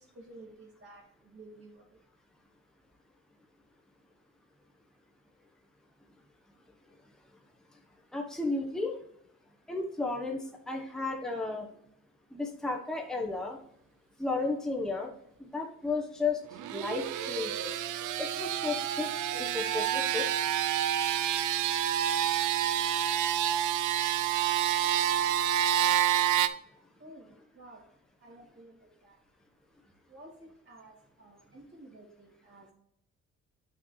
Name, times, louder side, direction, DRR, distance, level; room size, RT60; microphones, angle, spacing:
voice 1, 0.0-1.8 27.0-27.8 28.2-28.8 29.0-29.2 30.1-32.7, right 1 dB, 40° right, -7 dB, 2.4 m, -52 dB
voice 2, 8.1-9.0 9.7-11.7 12.3-13.6 14.2-15.1 15.4-16.4 16.7-17.8 18.2-20.2, left 3 dB, ahead, 1 dB, 1.2 m, -33 dB
sound 1, 16.5-26.5, right 11 dB, 80° right, 0.6 m, -28 dB
9.1 x 6.1 x 3.2 m, 0.72 s
cardioid pair, 90°, 30 cm